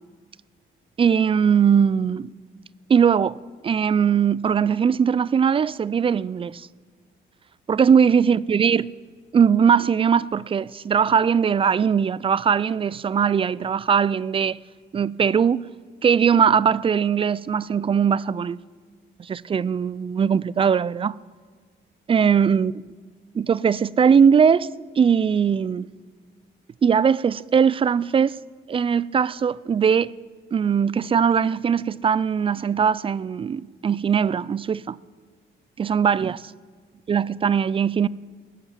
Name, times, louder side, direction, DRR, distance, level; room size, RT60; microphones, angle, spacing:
voice 1, 1.0-2.3 2.9-3.4 3.6-6.7 7.7-8.9 9.3-14.6 14.9-15.6 16.0-18.6 19.2-21.2 22.1-22.7 23.3-24.7 25.0-25.9 26.8-28.4 28.7-30.1 30.5-35.0 35.8-36.4 37.1-38.1, right 7 dB, 25° right, 0.3 m, -20 dB
19.5 x 8.1 x 7.2 m
cardioid pair, 90°, 20 cm